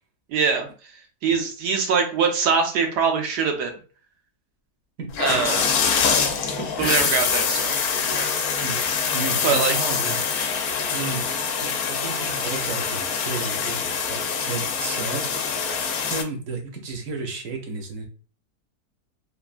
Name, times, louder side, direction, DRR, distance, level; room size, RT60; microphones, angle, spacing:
voice 1, 0.3-0.7 1.2-3.7 5.2-5.7 6.8-7.7 8.0-8.3 9.4-9.7, right 5 dB, 90° right, 3 dB, 1.3 m, -23 dB
voice 2, 5.0-5.4 6.6-7.1 8.6-8.8 9.1-10.2 10.9-11.3 11.6-15.4 16.1-18.0, right 4 dB, 60° right, 3 dB, 1.0 m, -33 dB
sound 1, 5.1-16.2, left 6 dB, 75° left, 1.0 m, -24 dB
3.3 x 2.2 x 2.4 m, 0.37 s
omnidirectional pair, 1.7 m